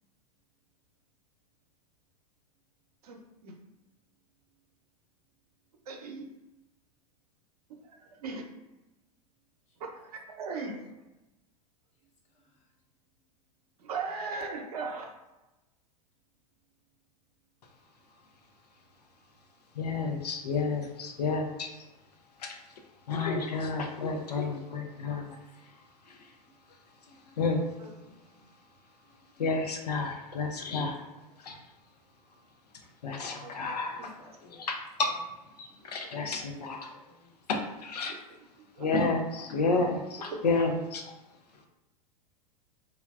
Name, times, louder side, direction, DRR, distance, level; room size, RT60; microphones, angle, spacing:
voice 1, 3.0-3.5 5.9-6.3 7.8-8.4 9.8-10.8 13.8-15.1 27.8-28.5 33.4-33.7 34.0-34.1 35.7-35.9 38.1-38.2 38.6-38.9 39.7-39.9 40.2-40.4, right 4 dB, 70° right, 2 dB, 0.6 m, -39 dB
voice 2, 19.7-21.8 22.4-22.6 23.1-25.4 26.1-26.3 27.3-27.6 29.4-31.0 31.4-31.6 33.0-34.1 34.5-35.1 35.6-36.9 37.5-38.1 38.8-41.1, left 3 dB, 80° left, 3 dB, 0.5 m, -31 dB
voice 3, 33.6-34.7 36.9-37.4 39.5-39.6, left 1 dB, 35° left, -2 dB, 0.9 m, -57 dB
3.4 x 2.1 x 2.4 m, 1.0 s
hypercardioid pair, 95°, 20 cm